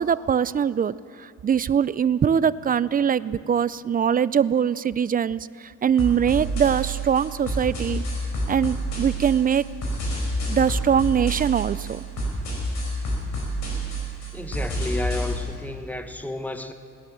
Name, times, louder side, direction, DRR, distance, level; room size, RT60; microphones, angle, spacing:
voice 1, 0.0-8.0 8.5-9.6 10.5-12.0, right 8 dB, 30° right, 18 dB, 0.4 m, -22 dB
sound 1, 6.0-15.4, right 1 dB, 70° left, 5.1 m, -29 dB
voice 2, 14.3-16.7, left 1 dB, 5° left, 8 dB, 1.1 m, -32 dB
18.0 x 10.5 x 7.5 m, 2.6 s
cardioid pair, 90°, 30 cm